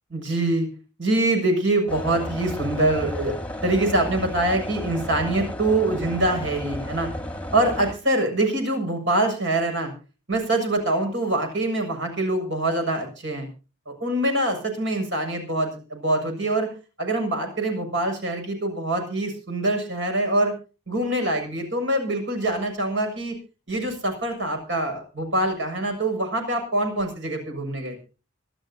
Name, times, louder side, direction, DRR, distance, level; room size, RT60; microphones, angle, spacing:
voice 1, 0.1-0.7 1.0-3.3 3.6-7.1 7.5-9.9 10.3-13.5 13.9-16.7 17.0-20.5 20.9-23.4 23.7-28.0, right 1 dB, 60° right, 4 dB, 7.1 m, -24 dB
sound 1, 1.9-7.9, equal, 5° left, 1.6 m, -33 dB
25.5 x 12.5 x 2.9 m, 0.35 s
head